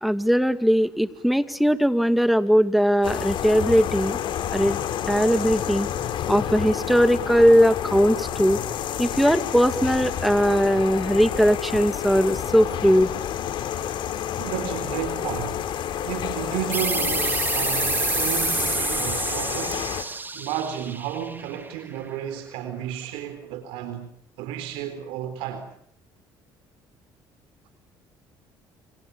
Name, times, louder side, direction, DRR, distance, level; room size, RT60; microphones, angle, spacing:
voice 1, 0.0-4.2 4.5-4.8 5.1-5.9 6.3-8.6 9.0-13.1, equal, ahead, 2.2 m, -20 dB
sound 1, 3.0-20.0, left 9 dB, 65° left, 3.3 m, -29 dB
voice 2, 14.4-15.7 16.0-19.9 20.3-24.1 24.4-25.7, right 10 dB, 85° right, 4.0 m, -32 dB
sound 2, 16.7-22.0, right 3 dB, 20° right, 3.1 m, -27 dB
27.5 x 27.5 x 7.0 m
supercardioid pair, 80°, 9 cm